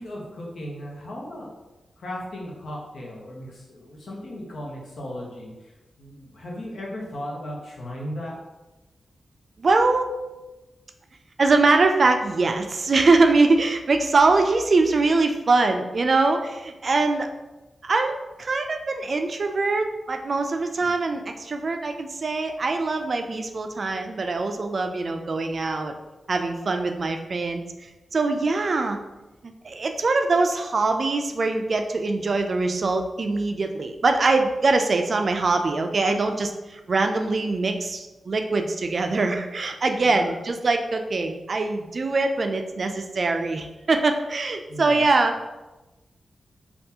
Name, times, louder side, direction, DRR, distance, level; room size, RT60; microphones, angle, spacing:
voice 1, 0.0-1.5 2.0-5.5 6.0-8.3 40.0-40.3 44.7-45.0, equal, 75° left, -3 dB, 0.9 m, -36 dB
voice 2, 9.6-10.2 11.4-17.3 17.8-25.9 26.3-29.0 29.4-45.5, right 3 dB, 55° right, 5 dB, 0.3 m, -23 dB
3.4 x 2.4 x 2.8 m, 1.1 s
cardioid pair, 65°, 0 cm